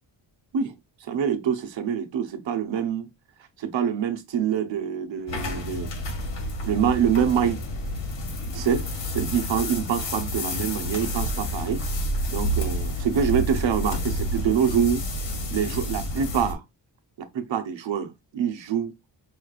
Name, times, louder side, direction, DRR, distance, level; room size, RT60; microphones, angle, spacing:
voice 1, 1.0-3.1 3.6-5.9 6.6-7.6 8.5-11.9 12.3-15.0 15.5-16.6 17.2-18.9, right 8 dB, 80° right, 0.9 m, -25 dB
sound 1, 5.3-16.5, left 1 dB, 75° left, 1.5 m, -29 dB
5.6 x 3.2 x 2.4 m
wide cardioid pair, 155°, 44 cm